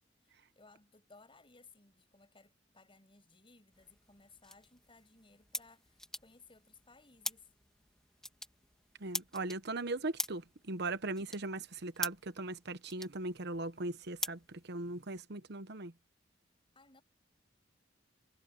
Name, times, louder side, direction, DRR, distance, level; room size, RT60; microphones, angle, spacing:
voice 1, 0.2-7.5 16.7-17.0, left 3 dB, 30° left, 7.7 m, -61 dB
sound 1, 3.7-15.2, left 1 dB, 5° left, 2.9 m, -46 dB
voice 2, 9.0-15.9, right 2 dB, 60° right, 1.1 m, -39 dB
head